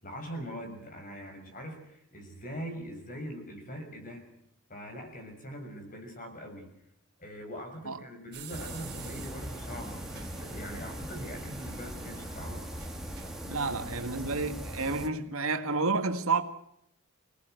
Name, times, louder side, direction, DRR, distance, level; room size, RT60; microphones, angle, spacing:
voice 1, 0.0-4.3 4.7-6.7 7.2-12.7, equal, 40° left, 6.5 m, -42 dB
sound 1, 8.3-14.0, right 6 dB, 50° right, 4.2 m, -50 dB
sound 2, 8.5-15.1, equal, ahead, 2.3 m, -40 dB
voice 2, 13.5-16.4, right 3 dB, 65° right, 1.9 m, -30 dB
26.5 x 18.5 x 7.9 m
head